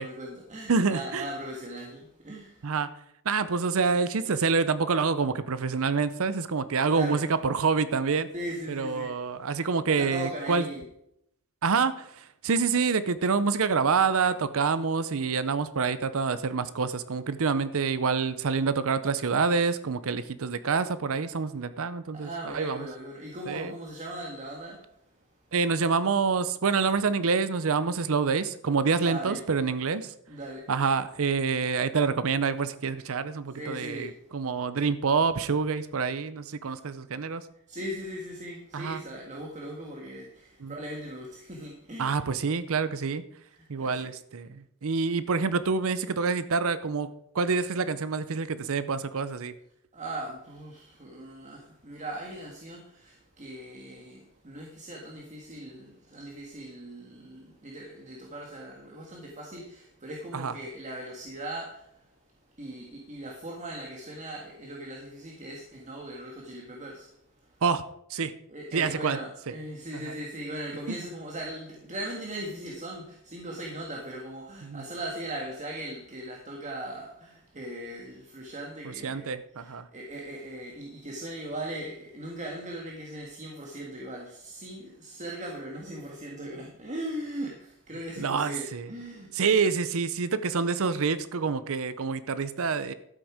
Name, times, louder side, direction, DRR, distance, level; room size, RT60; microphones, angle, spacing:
voice 1, 0.0-2.7 6.9-7.2 8.3-9.1 10.0-10.8 22.1-24.8 29.0-29.4 30.3-30.6 33.6-34.1 36.7-36.8 37.7-42.2 43.6-44.1 49.9-62.0 62.6-67.1 67.5-67.6 68.5-79.3 79.6-89.4, right 1 dB, 35° right, -1 dB, 1.7 m, -39 dB
voice 2, 0.7-1.3 2.6-2.9 3.2-8.3 8.7-10.7 11.6-22.9 23.5-23.7 25.5-30.1 30.7-37.4 38.7-39.0 40.6-40.7 42.0-43.2 43.7-47.1 47.3-49.5 60.3-60.5 67.6-67.8 68.1-68.3 68.7-69.2 69.9-70.1 70.9-71.0 74.6-74.8 78.8-79.9 88.2-88.9 89.3-92.9, right 5 dB, 65° right, 14 dB, 0.6 m, -27 dB
12.5 x 8.0 x 5.0 m, 0.76 s
head